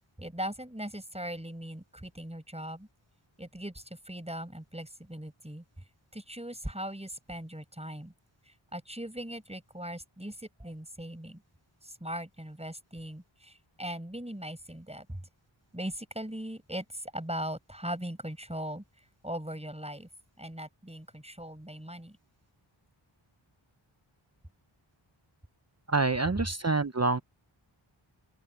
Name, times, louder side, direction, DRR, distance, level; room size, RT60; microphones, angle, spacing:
voice 1, 0.2-2.9 3.4-5.6 6.1-8.1 8.5-11.4 11.8-15.2 15.7-18.8 19.2-20.1 20.4-22.2, equal, 10° right, 5.5 m, -39 dB
voice 2, 25.9-27.2, right 3 dB, 30° right, 0.8 m, -27 dB
open air
wide cardioid pair, 55°, 49 cm